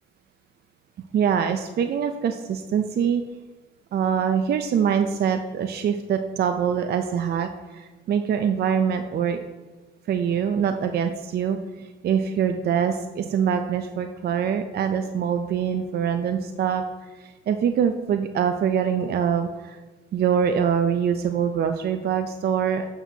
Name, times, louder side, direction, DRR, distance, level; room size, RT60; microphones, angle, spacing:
voice 1, 1.1-3.2 3.9-9.4 10.1-16.8 17.2-19.8 20.1-22.9, right 8 dB, 55° right, 7 dB, 0.4 m, -24 dB
7.7 x 5.9 x 2.7 m, 1.2 s
cardioid pair, 90°, 20 cm